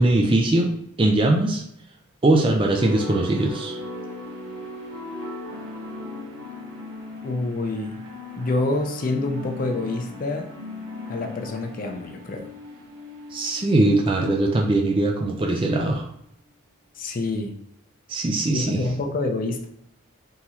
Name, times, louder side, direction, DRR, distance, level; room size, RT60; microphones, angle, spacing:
voice 1, 0.0-1.6 2.2-3.8 13.3-16.0 18.1-18.8, right 2 dB, 25° right, 1 dB, 0.4 m, -21 dB
sound 1, 2.8-16.1, left 2 dB, 80° right, 1.4 m, -38 dB
voice 2, 7.2-8.0 8.4-10.5 11.1-12.5 17.0-17.5 18.5-19.7, left 2 dB, 40° left, 4 dB, 0.4 m, -27 dB
3.6 x 3.0 x 2.8 m, 0.75 s
head